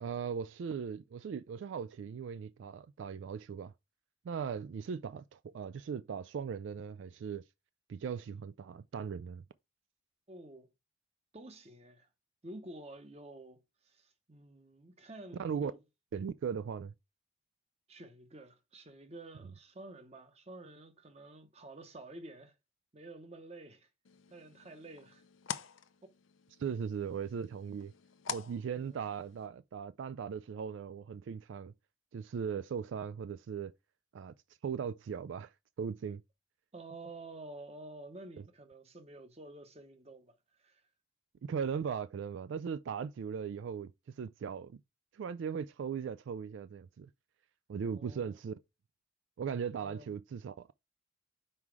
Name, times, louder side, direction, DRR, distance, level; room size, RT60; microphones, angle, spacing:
voice 1, 0.0-3.7 4.2-7.4 7.9-9.4 15.4-15.7 16.1-16.9 26.6-27.9 28.3-31.7 32.1-33.7 34.1-34.3 34.6-35.5 35.8-36.2 41.4-44.8 45.1-47.1 47.7-48.5 49.4-50.7, right 7 dB, 70° right, 0.3 m, -38 dB
voice 2, 10.3-10.7 11.3-12.1 12.4-15.8 17.9-22.5 22.9-23.9 24.3-25.2 28.7-29.0 36.7-40.8 47.8-48.4 49.8-50.1, right 2 dB, 30° right, 0.9 m, -50 dB
sound 1, 24.0-29.5, left 7 dB, 80° left, 0.6 m, -46 dB
5.6 x 4.7 x 4.7 m
head